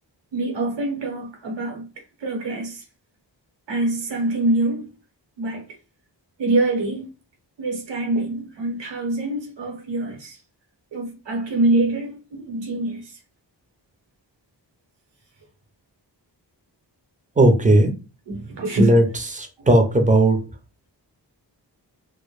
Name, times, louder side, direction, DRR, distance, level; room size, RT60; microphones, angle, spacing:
voice 1, 0.3-1.9 2.2-2.8 3.7-4.9 5.4-5.8 6.4-7.1 7.6-10.4 10.9-13.2 18.3-18.9 19.6-19.7, right 2 dB, 75° right, 0.8 m, -25 dB
voice 2, 17.4-17.9 18.8-19.0 19.3-20.4, right 1 dB, 20° right, 0.5 m, -16 dB
2.1 x 2.0 x 3.0 m
wide cardioid pair, 110°, 43 cm